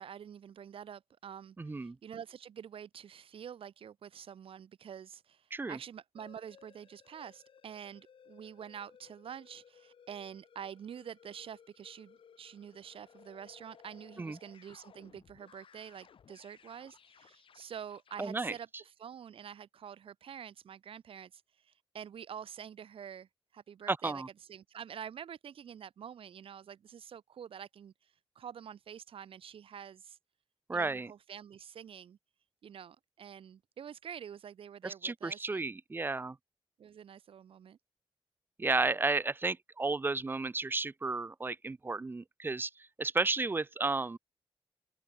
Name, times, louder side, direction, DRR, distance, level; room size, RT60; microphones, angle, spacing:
voice 1, 0.0-23.3 23.5-30.2 30.7-32.2 32.6-35.8 36.8-37.8, right 8 dB, 90° right, 5.8 m, -47 dB
voice 2, 1.6-2.0 5.5-5.8 14.2-14.4 18.2-18.5 23.9-24.3 30.7-31.1 34.8-36.4 38.6-42.7 43.0-44.2, right 3 dB, 25° right, 0.7 m, -33 dB
sound 1, 6.2-18.6, left 7 dB, 75° left, 7.5 m, -60 dB
open air
wide cardioid pair, 125°, 9 cm